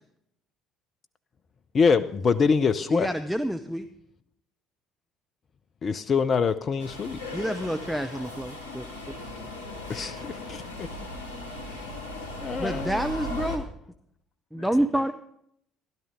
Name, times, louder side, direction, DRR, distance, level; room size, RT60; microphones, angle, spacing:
voice 1, 1.7-3.1 5.8-7.2 9.9-10.1 12.4-13.0, left 5 dB, 40° left, 0.6 m, -24 dB
voice 2, 2.9-3.9 7.3-8.8 12.6-13.6 14.5-15.1, right 1 dB, ahead, 0.7 m, -28 dB
Subway metro underground, 6.8-13.6, left 1 dB, 75° left, 1.9 m, -37 dB
voice 3, 9.1-10.9 12.5-12.6 14.5-14.7, left 2 dB, 85° right, 6.4 m, -49 dB
13.0 x 12.0 x 3.6 m
figure-of-eight pair, 55°, 0 cm